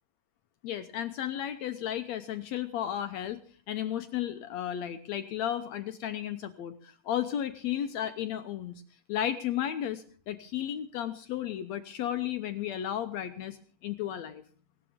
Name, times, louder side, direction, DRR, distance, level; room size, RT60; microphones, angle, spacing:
voice 1, 0.6-8.8 9.1-14.4, left 10 dB, 70° left, 9 dB, 1.8 m, -34 dB
18.5 x 18.0 x 3.7 m, 0.42 s
omnidirectional pair, 3.8 m